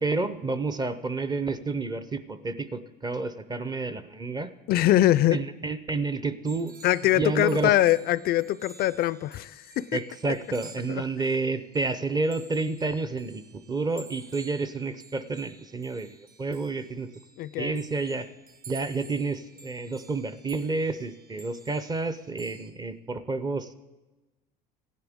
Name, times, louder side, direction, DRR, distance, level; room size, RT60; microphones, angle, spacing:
voice 1, 0.0-4.5 5.3-6.7 7.2-7.7 9.9-17.1 17.6-18.3 18.7-23.7, right 3 dB, 20° right, 0.6 m, -30 dB
voice 2, 4.7-5.4 6.8-10.0 10.9-11.0 17.4-17.8, left 14 dB, 50° left, 0.4 m, -23 dB
sound 1, 6.4-22.7, right 4 dB, 45° right, 1.2 m, -52 dB
15.5 x 10.5 x 3.6 m
cardioid pair, 120°, 21 cm